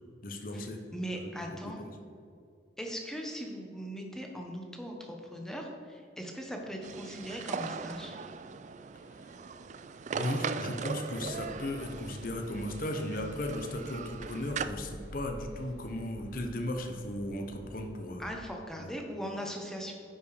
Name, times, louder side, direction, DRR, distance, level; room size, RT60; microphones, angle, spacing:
voice 1, 0.2-0.8 1.1-1.3 1.6-2.0 9.2-9.3 10.1-18.2 18.8-18.9, left 1 dB, 50° left, 4 dB, 0.8 m, -36 dB
voice 2, 0.9-1.8 2.8-8.2 18.2-19.9, equal, 5° left, 1 dB, 1.0 m, -39 dB
sound 1, 6.8-14.7, right 5 dB, 40° right, 0.3 m, -39 dB
sound 2, 11.1-18.3, equal, 60° right, 1.6 m, -49 dB
9.8 x 5.2 x 4.9 m, 2.5 s
head